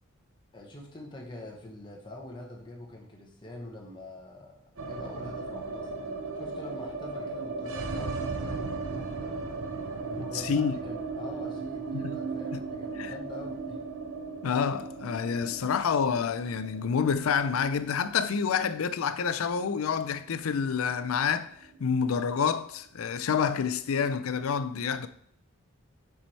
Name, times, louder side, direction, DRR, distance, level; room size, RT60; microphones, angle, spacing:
voice 1, 0.5-5.9 6.4-9.4 9.9-13.8, left 1 dB, 20° left, 1.0 m, -44 dB
sound 1, 4.8-20.9 21.1-21.2 21.5-22.2, right 4 dB, 80° right, 0.8 m, -37 dB
voice 2, 10.3-10.8 11.9-12.2 12.5-12.6 13.0-13.1 14.4-21.5 21.8-25.1, left 6 dB, 85° left, 0.5 m, -28 dB
6.1 x 4.8 x 4.2 m
head